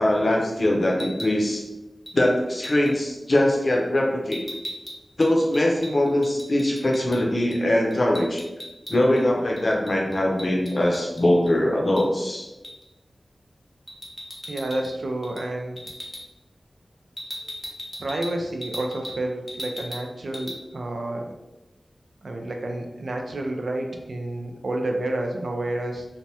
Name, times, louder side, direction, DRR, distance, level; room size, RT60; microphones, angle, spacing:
voice 1, 0.0-1.6 2.1-4.4 5.2-8.4 8.9-12.5, left 1 dB, 60° left, 0 dB, 0.6 m, -22 dB
sound 1, 0.9-1.4 2.1-2.2 2.6-2.9 4.3-7.2 7.5-7.6 7.9-9.2 9.6-11.5 12.0-12.1 12.6-12.9 13.9-14.9 15.2-15.5 15.8-16.2 17.2-19.2 19.5-20.1 20.3-20.6, equal, 10° left, 0.5 m, -38 dB
voice 2, 14.5-15.8 18.0-21.3 22.2-26.0, right 1 dB, 80° right, 2 dB, 0.4 m, -29 dB
3.3 x 2.1 x 2.8 m, 1.0 s
wide cardioid pair, 70°, 0 cm